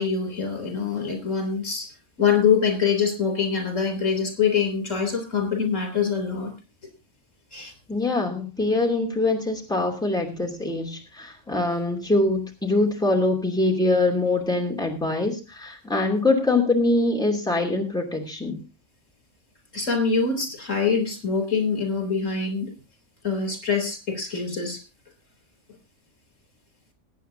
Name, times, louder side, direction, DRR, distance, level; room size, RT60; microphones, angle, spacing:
voice 1, 0.0-1.9 2.2-6.5 7.5-7.7 19.7-22.7 23.2-24.8, left 6 dB, 85° left, 6 dB, 3.8 m, -24 dB
voice 2, 7.9-18.6, left 2 dB, 5° left, 0 dB, 2.8 m, -23 dB
22.0 x 9.2 x 2.8 m, 0.30 s
omnidirectional pair, 1.3 m